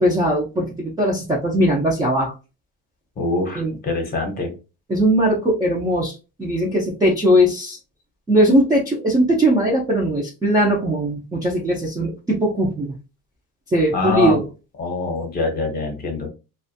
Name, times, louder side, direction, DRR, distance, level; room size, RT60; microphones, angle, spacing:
voice 1, 0.0-2.3 3.6-3.7 4.9-7.8 8.3-12.9 13.7-14.4, equal, 10° right, -3 dB, 0.3 m, -19 dB
voice 2, 3.2-4.5 13.9-14.4 14.8-16.3, left 2 dB, 25° left, 3 dB, 0.7 m, -24 dB
2.4 x 2.2 x 2.5 m, 0.30 s
cardioid pair, 150°, 36 cm